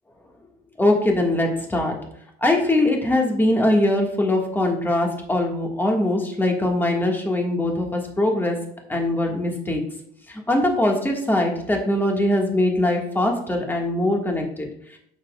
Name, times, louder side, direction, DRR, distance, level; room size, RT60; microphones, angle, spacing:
voice 1, 0.8-2.0 2.4-8.6 8.9-9.8 10.3-14.7, left 1 dB, 10° left, 1 dB, 1.7 m, -21 dB
9.0 x 7.4 x 2.4 m, 0.69 s
cardioid pair, 110°, 17 cm